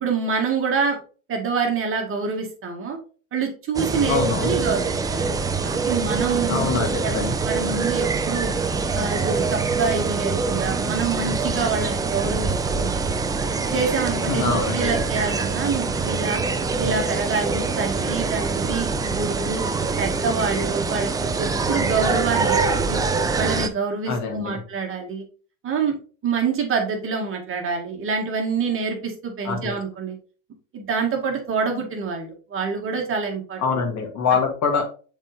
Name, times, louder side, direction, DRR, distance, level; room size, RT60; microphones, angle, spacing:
voice 1, 0.0-1.0 1.3-3.0 3.3-5.2 5.6-8.5 8.9-12.9 13.7-16.4 16.8-19.6 20.0-23.0 23.4-25.2 25.6-26.0 26.2-30.2 30.7-33.8, right 5 dB, 30° right, 2 dB, 1.9 m, -26 dB
sound 1, 3.7-23.7, right 4 dB, 10° right, 0.3 m, -24 dB
voice 2, 4.1-4.5 6.5-7.3 14.3-15.0 24.1-24.6 29.4-29.7 33.6-34.8, left 5 dB, 45° left, 3 dB, 2.0 m, -24 dB
7.1 x 4.2 x 3.4 m, 0.38 s
supercardioid pair, 120°, 42 cm